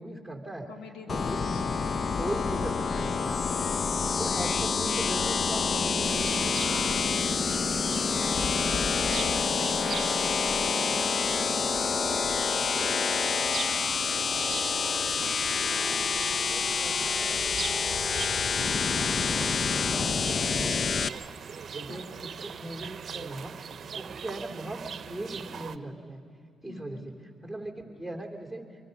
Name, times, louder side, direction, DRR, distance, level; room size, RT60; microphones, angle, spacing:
voice 1, 0.0-0.7 1.0-3.4 4.0-6.6 19.9-20.1 20.4-21.2 21.7-23.6 23.9-24.8 25.1-26.2 26.6-27.1 27.4-28.6, right 1 dB, 5° left, 2 dB, 2.9 m, -38 dB
voice 2, 0.7-1.6 7.4-7.6 7.9-11.0 11.3-14.7 15.1-20.2 21.9-22.1 26.7-27.1, left 4 dB, 85° left, 4 dB, 1.9 m, -47 dB
sound 1, 1.1-21.1, left 5 dB, 50° left, 0.6 m, -27 dB
sound 2, 6.0-25.8, right 7 dB, 55° right, 0.7 m, -40 dB
25.0 x 23.5 x 5.3 m, 2.3 s
supercardioid pair, 65°, 0 cm